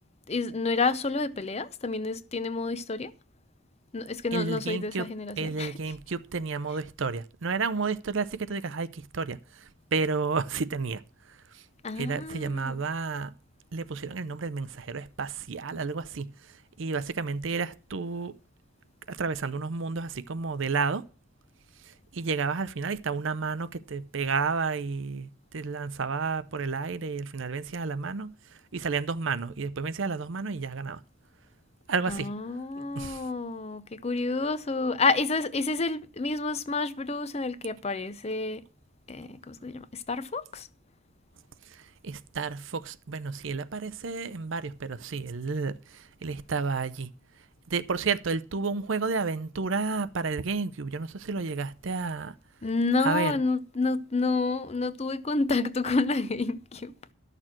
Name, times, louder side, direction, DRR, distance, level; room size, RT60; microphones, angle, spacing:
voice 1, 0.3-3.1 3.9-5.7 11.8-12.8 32.1-38.6 39.1-40.7 52.6-57.1, left 3 dB, 30° left, 0.6 m, -29 dB
voice 2, 4.3-5.1 5.4-11.0 11.3-11.6 12.0-13.3 13.7-18.3 19.1-21.1 21.8-31.0 31.9-32.3 32.9-33.3 41.7-47.1 47.7-52.3 53.0-53.4, right 4 dB, 65° right, 0.6 m, -31 dB
12.0 x 6.7 x 5.9 m
head